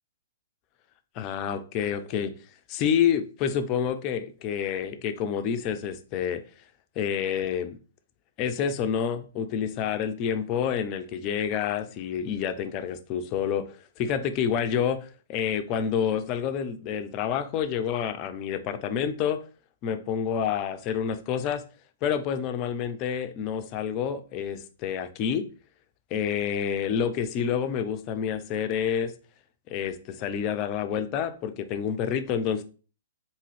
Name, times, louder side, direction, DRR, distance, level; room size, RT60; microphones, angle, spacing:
voice 1, 1.2-2.3 2.7-6.4 7.0-7.8 8.4-19.4 19.8-21.6 22.0-25.5 26.1-29.1 29.7-32.6, left 8 dB, 35° left, 0.4 m, -28 dB
3.6 x 2.6 x 3.2 m
figure-of-eight pair, 110°, 0 cm